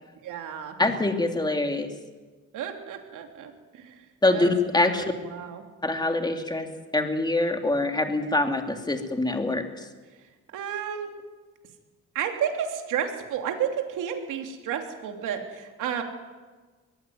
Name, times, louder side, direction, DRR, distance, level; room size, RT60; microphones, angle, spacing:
voice 1, 0.2-0.7 2.5-4.0 4.3-4.5 4.8-5.6 10.5-11.1 12.1-16.0, right 8 dB, 85° right, 4 dB, 3.3 m, -31 dB
voice 2, 0.8-1.9 4.2-5.1 5.8-6.7 6.9-9.8, left 2 dB, 15° left, 4 dB, 3.0 m, -24 dB
22.5 x 15.5 x 9.5 m, 1.4 s
cardioid pair, 90°, 30 cm